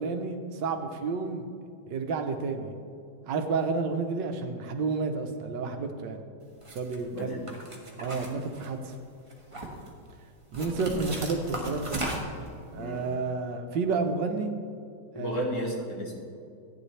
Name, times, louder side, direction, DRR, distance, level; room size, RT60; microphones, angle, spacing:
voice 1, 0.0-1.4 1.9-2.7 3.3-6.2 6.7-7.5 8.0-9.0 10.5-12.0 12.7-14.5 15.1-15.4, right 4 dB, 80° right, 6 dB, 1.6 m, -30 dB
sound 1, 6.6-7.0 7.5-8.9 9.3-9.9 10.5-12.5, right 1 dB, 20° right, 1.3 m, -36 dB
voice 2, 7.1-7.4 12.7-13.0 15.1-16.2, equal, 45° left, -1 dB, 1.8 m, -33 dB
15.0 x 9.6 x 3.3 m, 2.4 s
omnidirectional pair, 1.9 m